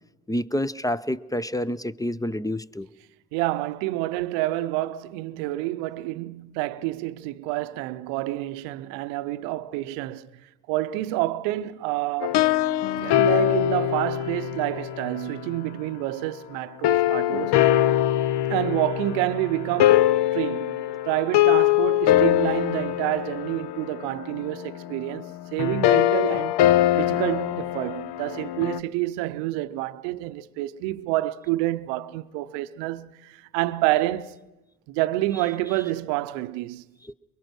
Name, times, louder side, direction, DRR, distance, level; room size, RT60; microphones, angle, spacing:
voice 1, 0.3-2.9, left 1 dB, 10° left, 0.6 m, -28 dB
voice 2, 3.3-10.3 10.7-12.4 13.0-17.6 18.5-26.5 27.0-34.4 34.9-36.9, right 16 dB, 90° right, 0.7 m, -28 dB
sound 1, 12.2-15.5 16.8-28.8, left 13 dB, 70° left, 0.8 m, -23 dB
23.0 x 22.0 x 6.0 m
supercardioid pair, 65°, 43 cm